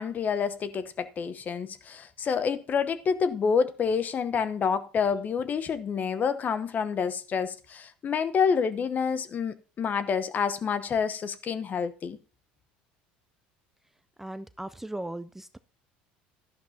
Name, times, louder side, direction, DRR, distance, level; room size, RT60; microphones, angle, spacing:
voice 1, 0.0-12.2, left 6 dB, 40° left, 0.9 m, -28 dB
voice 2, 14.2-15.6, right 1 dB, 5° right, 0.4 m, -37 dB
12.5 x 11.0 x 2.8 m
supercardioid pair, 90°, 5 cm